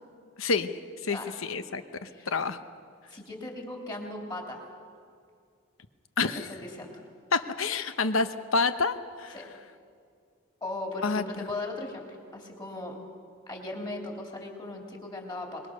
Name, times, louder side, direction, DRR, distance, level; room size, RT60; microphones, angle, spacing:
voice 1, 0.4-0.8 1.0-2.6 6.2-6.5 7.3-9.3 11.0-11.5, left 4 dB, 90° left, 11 dB, 0.9 m, -28 dB
voice 2, 3.1-4.6 6.2-7.0 9.3-9.4 10.6-12.0 12.3-13.0 13.5-15.6, left 2 dB, 20° left, 1 dB, 3.1 m, -38 dB
23.0 x 21.0 x 6.6 m, 2.2 s
head